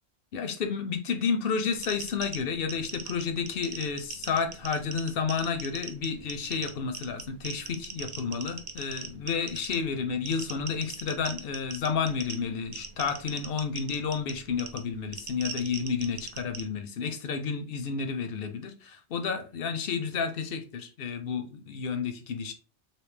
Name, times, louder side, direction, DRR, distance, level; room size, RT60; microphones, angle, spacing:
voice 1, 0.3-22.5, left 6 dB, 60° left, 0.7 m, -31 dB
sound 1, 1.7-16.6, right 6 dB, 55° right, 0.4 m, -41 dB
3.2 x 2.6 x 3.2 m
omnidirectional pair, 1.2 m